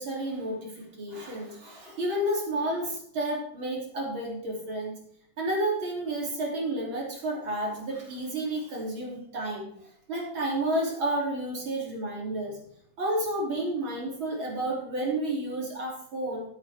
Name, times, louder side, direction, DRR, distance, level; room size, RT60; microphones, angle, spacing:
voice 1, 0.0-5.0 5.4-9.8 10.1-12.6 13.0-16.4, right 1 dB, 70° right, -2 dB, 3.9 m, -31 dB
14.5 x 8.0 x 3.5 m, 0.65 s
omnidirectional pair, 2.3 m